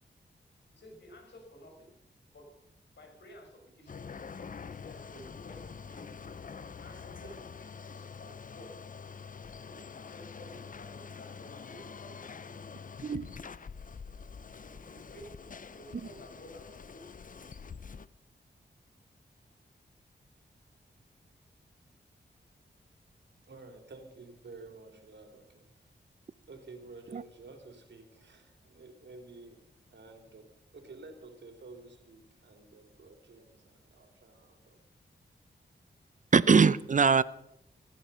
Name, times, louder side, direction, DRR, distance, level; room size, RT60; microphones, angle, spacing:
voice 1, 0.7-1.9 2.3-2.5 2.9-8.8 9.7-13.7 14.6-17.7, equal, 70° left, 2 dB, 6.3 m, -54 dB
sound 1, 3.9-18.1, left 6 dB, 45° left, 0.6 m, -46 dB
voice 2, 23.5-26.0 26.5-29.6 29.9-34.8, right 3 dB, 70° right, 5 dB, 3.4 m, -51 dB
voice 3, 36.3-37.2, right 5 dB, 45° right, 18 dB, 0.7 m, -22 dB
16.5 x 15.0 x 5.6 m, 0.81 s
cardioid pair, 65°, 19 cm